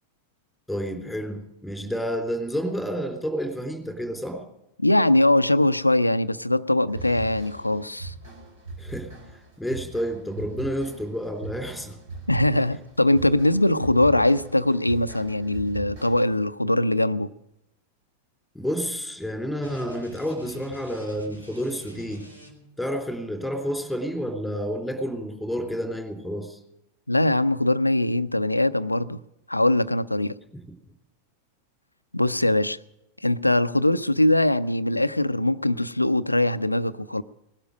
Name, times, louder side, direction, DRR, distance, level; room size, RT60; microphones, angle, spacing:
voice 1, 0.7-4.4 8.8-9.1 9.6-12.0 18.5-22.2 22.8-26.6 30.5-30.6, equal, ahead, 4 dB, 3.6 m, -30 dB
voice 2, 4.8-8.1 12.3-17.3 27.1-29.2 29.5-30.3 32.1-32.8 33.2-37.2, left 1 dB, 85° left, 14 dB, 0.5 m, -21 dB
sound 1, 6.9-16.5, right 3 dB, 55° right, 3.9 m, -40 dB
sound 2, 19.6-22.8, left 1 dB, 90° right, 3.2 m, -46 dB
19.0 x 12.0 x 6.4 m, 0.87 s
figure-of-eight pair, 90°, 0 cm